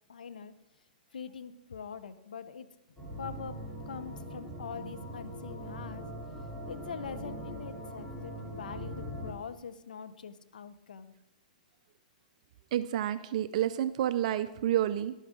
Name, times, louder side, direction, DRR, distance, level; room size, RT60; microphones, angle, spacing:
voice 1, 0.1-0.5 1.1-2.7 3.2-6.1 6.7-11.1, left 6 dB, 85° left, 12 dB, 0.8 m, -43 dB
sound 1, 3.0-9.3, equal, 5° left, 3.2 m, -41 dB
voice 2, 12.7-15.1, right 11 dB, 55° right, 12 dB, 0.4 m, -29 dB
11.5 x 11.0 x 3.7 m, 0.92 s
hypercardioid pair, 135°, 4 cm